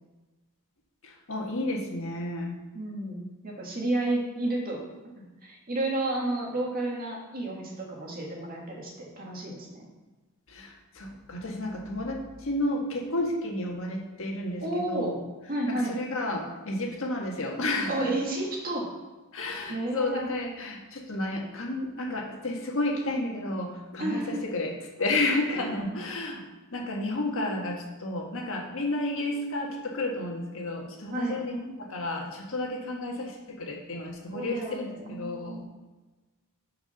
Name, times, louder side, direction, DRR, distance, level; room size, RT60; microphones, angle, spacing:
voice 1, 1.0-2.5 10.5-15.2 15.7-18.1 19.3-26.4 26.7-35.7, left 2 dB, 65° left, 0 dB, 1.5 m, -31 dB
voice 2, 2.7-4.8 5.4-9.9 14.6-15.1 15.5-15.9 17.9-18.9 19.7-20.3 24.0-24.4 25.5-25.6 31.1-31.4 34.3-35.6, right 1 dB, 40° right, -1 dB, 1.8 m, -31 dB
6.6 x 5.9 x 5.7 m, 1.2 s
head